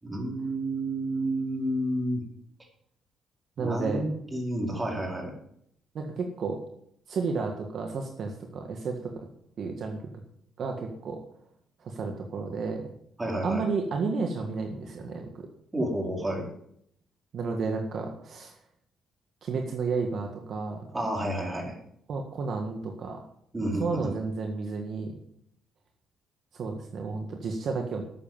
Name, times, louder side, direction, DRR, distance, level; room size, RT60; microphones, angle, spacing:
voice 1, 0.0-2.2 3.6-5.3 13.2-13.6 15.7-16.5 20.9-21.7 23.5-24.2, right 1 dB, 20° right, -1 dB, 4.7 m, -30 dB
voice 2, 3.6-4.0 5.9-6.6 7.1-9.1 9.6-10.0 10.6-11.2 11.8-12.9 13.4-15.5 17.3-18.5 19.4-20.8 22.1-23.2 23.8-25.2 26.5-28.0, right 4 dB, 60° right, 3 dB, 1.7 m, -32 dB
12.5 x 7.5 x 7.3 m, 0.71 s
cardioid pair, 90°, 0 cm